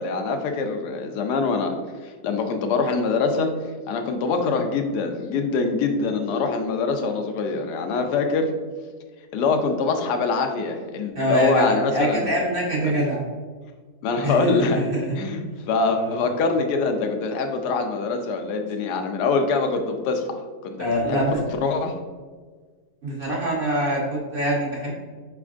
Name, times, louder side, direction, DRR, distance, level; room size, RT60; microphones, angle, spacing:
voice 1, 0.0-1.8 2.0-3.6 3.9-8.5 9.3-12.3 12.9-13.0 14.0-14.9 15.2-15.4 15.7-20.3 20.6-21.9, left 4 dB, 90° left, 5 dB, 1.2 m, -24 dB
voice 2, 11.1-13.2 14.2-15.2 16.0-16.1 20.8-21.4 23.0-24.9, equal, 45° right, -4 dB, 0.8 m, -24 dB
5.0 x 3.4 x 2.4 m, 1.5 s
omnidirectional pair, 1.7 m